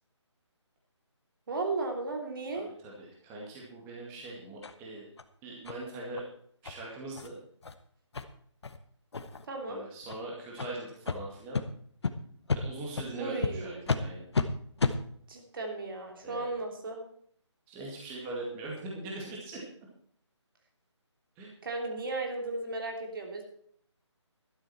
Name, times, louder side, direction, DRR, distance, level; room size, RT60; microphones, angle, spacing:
voice 1, 1.5-2.7 9.5-9.8 13.2-13.9 15.3-17.1 21.6-23.4, right 3 dB, 45° right, 3 dB, 3.0 m, -35 dB
voice 2, 2.5-5.1 5.4-6.2 6.6-7.4 9.7-11.6 12.5-14.3 16.2-16.5 17.7-19.6 21.4-21.6, right 2 dB, 15° right, -3 dB, 2.4 m, -41 dB
sound 1, 4.6-4.7 5.2-5.3 5.7-5.8 6.1-6.2 6.6-6.7 7.1-7.3 7.6-7.7 8.1-8.2 8.6-8.8 9.1-9.5 10.0-10.2 10.6-10.7 11.1-11.2 11.5-11.6 12.0-12.1 12.5-12.6 13.0-13.1 13.4-13.5 13.9-14.0 14.3-14.5 14.8-15.0, left 4 dB, 60° left, 1.2 m, -30 dB
12.5 x 12.0 x 4.5 m, 0.63 s
figure-of-eight pair, 155°, 16 cm